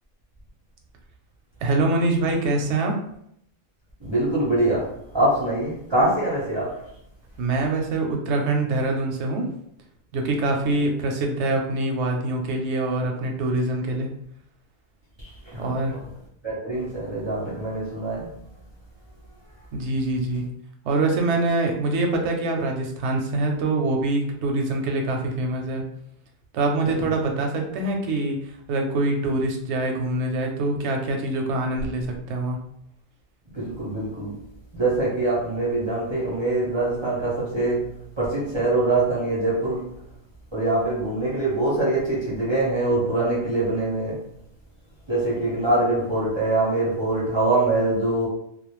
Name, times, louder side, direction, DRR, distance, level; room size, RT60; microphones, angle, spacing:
voice 1, 1.6-3.0 7.4-9.5 10.1-14.1 15.6-15.9 19.7-20.4 20.8-25.8 26.5-32.6, right 2 dB, 65° right, 0.7 m, -24 dB
voice 2, 4.0-6.9 15.2-16.0 16.4-18.4 26.8-27.0 33.5-34.4 34.7-39.9 40.5-44.2 45.1-48.3, right 2 dB, 40° right, 0.4 m, -24 dB
2.4 x 2.0 x 3.0 m
omnidirectional pair, 1.5 m